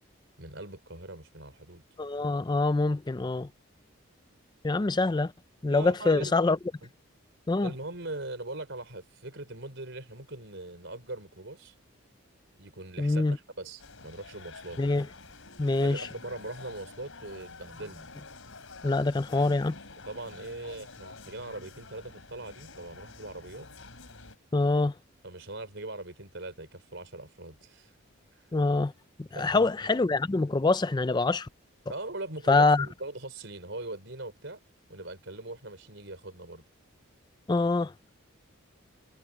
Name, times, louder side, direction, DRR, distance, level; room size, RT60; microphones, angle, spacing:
voice 1, 0.4-1.8 5.7-6.3 6.8-6.9 7.6-11.7 12.6-14.8 15.8-18.1 20.0-23.7 25.2-27.9 28.3-28.4 29.3-29.9 31.9-34.6 34.9-36.6, right 2 dB, 60° right, 4.4 m, -41 dB
voice 2, 2.0-3.5 4.6-5.3 5.6-6.6 7.5-7.7 13.0-13.4 14.8-15.1 15.6-16.1 18.8-19.7 24.5-24.9 28.5-28.9 29.2-31.5 32.5-32.9 37.5-38.1, left 3 dB, 20° left, 0.4 m, -25 dB
sound 1, 13.8-24.4, left 4 dB, 70° left, 3.7 m, -48 dB
head